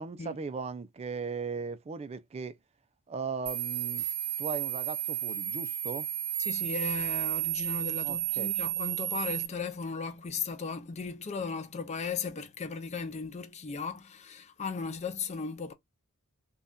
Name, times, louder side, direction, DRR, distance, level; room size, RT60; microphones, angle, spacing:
voice 1, 0.0-2.6 3.1-4.1 4.4-6.1 8.0-8.5, right 4 dB, 30° right, 0.3 m, -37 dB
sound 1, 3.5-9.5, right 11 dB, 90° right, 0.6 m, -32 dB
voice 2, 6.4-15.7, left 5 dB, 30° left, 0.5 m, -36 dB
2.7 x 2.3 x 3.5 m
head